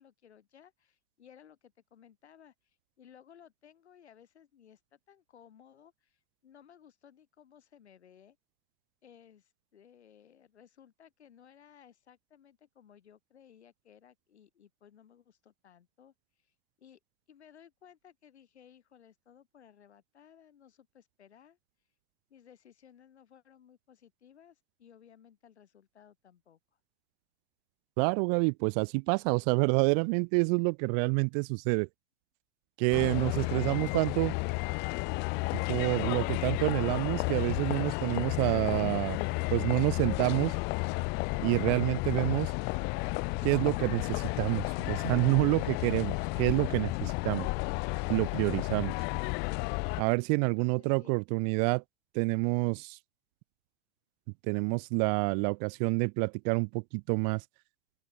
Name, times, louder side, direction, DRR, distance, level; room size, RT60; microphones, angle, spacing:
voice 1, 0.0-8.4 9.0-17.0 17.3-21.6 22.3-26.6 50.4-51.1, left 9 dB, 75° left, 6.0 m, -59 dB
voice 2, 28.0-31.9 32.8-34.4 35.7-39.2 39.5-40.5 41.4-42.5 43.4-47.5 48.1-48.9 50.0-51.8 52.1-53.0 54.5-57.4, right 40 dB or more, 40° right, 0.5 m, -28 dB
sound 1, 32.9-50.0, left 30 dB, 30° left, 0.4 m, -32 dB
open air
hypercardioid pair, 105°, 33 cm